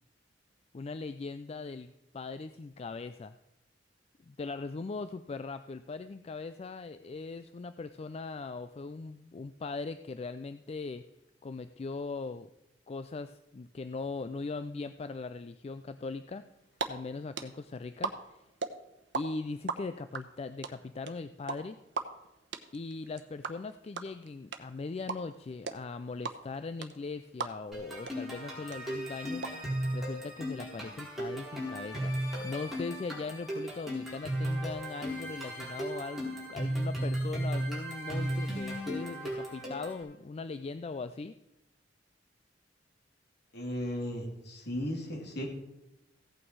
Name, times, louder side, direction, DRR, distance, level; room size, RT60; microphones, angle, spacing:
voice 1, 0.7-3.4 4.2-11.0 11.4-12.5 12.9-16.4 16.9-18.4 19.1-21.8 22.7-29.4 29.9-41.3, left 3 dB, 35° left, 11 dB, 0.4 m, -40 dB
sound 1, 16.5-16.9 17.1-19.2 19.5-27.8 28.1-28.2 28.4-29.5, right 5 dB, 70° right, 0.9 m, -36 dB
sound 2, 27.7-40.0, equal, ahead, 4.1 m, -35 dB
voice 2, 43.5-45.5, equal, 60° left, 0 dB, 3.0 m, -36 dB
16.0 x 8.7 x 4.7 m, 0.90 s
head